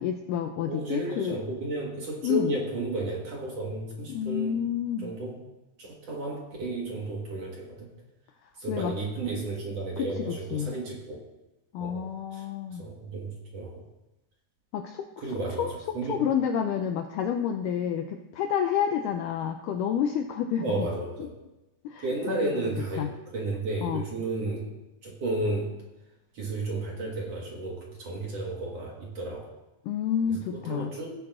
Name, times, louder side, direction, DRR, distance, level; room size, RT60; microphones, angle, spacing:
voice 1, 0.0-1.4 2.2-2.5 4.1-5.1 8.7-8.9 10.0-10.7 11.7-12.9 14.7-15.0 15.6-15.7 16.1-20.9 21.8-22.5 23.0-23.1 23.8-24.0 29.9-30.9, left 8 dB, 85° left, 6 dB, 1.9 m, -29 dB
voice 2, 0.7-4.6 5.0-5.3 5.8-7.9 8.6-11.2 11.8-12.5 12.8-13.8 15.2-16.3 20.6-21.3 22.0-24.6 25.0-25.7 26.3-29.5 30.3-31.1, right 2 dB, 55° right, -2 dB, 2.1 m, -33 dB
17.0 x 10.0 x 2.5 m, 1.0 s
omnidirectional pair, 4.3 m